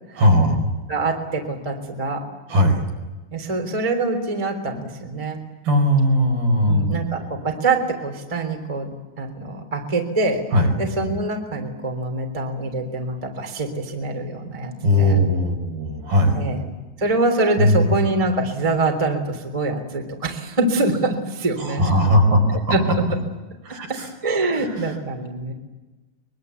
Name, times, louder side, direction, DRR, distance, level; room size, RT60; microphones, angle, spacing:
voice 1, 0.2-0.7 2.5-2.8 5.6-7.0 10.5-10.7 14.8-16.4 17.6-18.0 21.6-22.8 23.6-24.1 24.5-24.9, left 1 dB, 50° right, 2 dB, 6.6 m, -19 dB
voice 2, 0.9-2.2 3.3-5.4 6.6-10.4 10.8-14.7 15.0-15.2 16.3-16.6 17.0-21.9 22.7-23.0 24.2-25.5, right 2 dB, 10° right, 3 dB, 2.6 m, -24 dB
24.0 x 23.0 x 8.3 m, 1.2 s
omnidirectional pair, 5.3 m